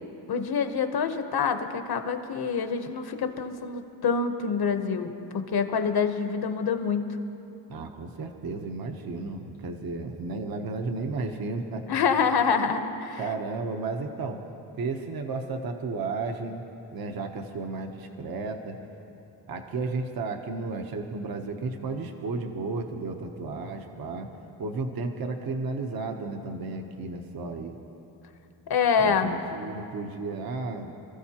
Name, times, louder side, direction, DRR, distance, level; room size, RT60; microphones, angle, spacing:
voice 1, 0.3-5.1 5.5-7.1 11.9-13.2 28.7-29.3, left 6 dB, 55° left, 7 dB, 1.0 m, -26 dB
voice 2, 7.7-11.8 13.2-14.4 14.8-16.6 16.9-18.8 19.5-24.3 24.6-27.8 29.0-30.9, right 3 dB, 55° right, 4 dB, 0.9 m, -33 dB
27.0 x 14.5 x 2.9 m, 2.8 s
wide cardioid pair, 170°, 44 cm